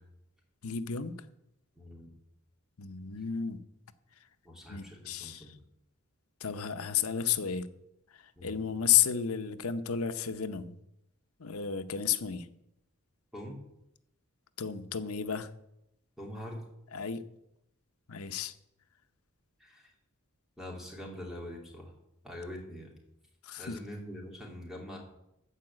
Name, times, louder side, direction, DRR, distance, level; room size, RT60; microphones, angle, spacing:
voice 1, 0.6-1.2 2.8-3.6 4.7-5.6 6.4-7.7 8.1-10.8 11.4-12.5 14.6-15.5 16.9-17.2 18.1-18.5 23.4-23.8, left 8 dB, 75° left, 10 dB, 0.8 m, -32 dB
voice 2, 1.7-2.1 4.4-5.6 8.3-8.6 13.3-13.6 16.2-16.6 19.6-19.9 20.6-21.9 22.2-22.9 23.6-25.0, left 1 dB, ahead, -1 dB, 2.9 m, -44 dB
14.0 x 4.8 x 8.7 m, 0.84 s
head